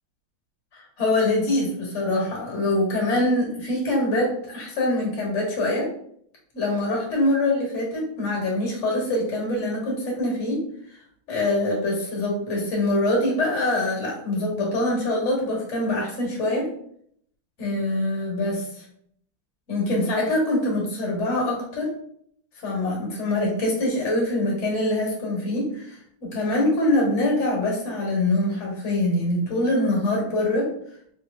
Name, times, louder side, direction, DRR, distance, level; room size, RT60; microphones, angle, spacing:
voice 1, 0.7-5.9 6.5-10.6 11.3-16.7 17.6-18.8 19.7-21.9 22.6-25.9 26.2-30.7, left 1 dB, 40° left, -3 dB, 1.4 m, -24 dB
4.0 x 3.0 x 2.5 m, 0.67 s
omnidirectional pair, 2.3 m